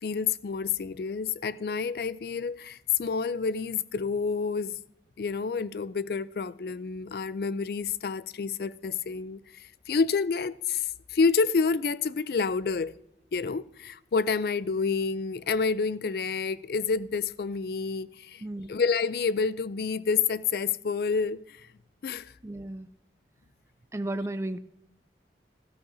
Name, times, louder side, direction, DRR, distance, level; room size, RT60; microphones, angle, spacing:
voice 1, 0.0-4.8 5.2-13.0 13.3-18.4 18.7-21.7 22.0-22.3, left 5 dB, 55° left, 0.4 m, -28 dB
voice 2, 22.4-22.9 23.9-24.6, right 1 dB, 15° right, 0.3 m, -33 dB
13.5 x 13.5 x 2.6 m
head